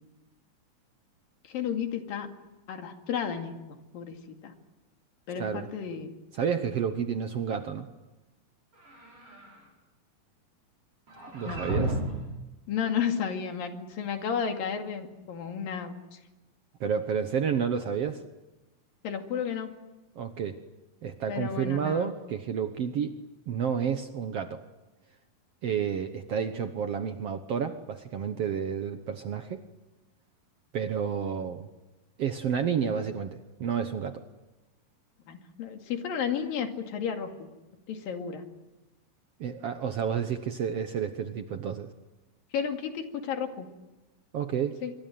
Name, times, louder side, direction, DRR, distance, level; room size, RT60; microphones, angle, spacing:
voice 1, 1.5-2.3 2.7-4.5 5.3-6.1 11.5-11.6 12.7-16.2 19.0-19.7 21.3-22.1 35.3-37.3 37.9-38.4 42.5-43.7 44.8-44.9, left 7 dB, 80° left, 5 dB, 4.0 m, -32 dB
voice 2, 5.3-5.7 6.3-7.9 11.3-12.0 16.8-18.2 20.1-20.6 21.0-23.2 23.5-24.6 25.6-29.6 30.7-31.7 32.2-34.2 39.4-41.9 44.3-44.8, right 7 dB, 60° right, 8 dB, 1.7 m, -30 dB
sound 1, 8.7-9.6 11.1-12.3, right 1 dB, 40° right, 8.4 m, -33 dB
25.5 x 24.0 x 9.3 m, 1.1 s
omnidirectional pair, 4.0 m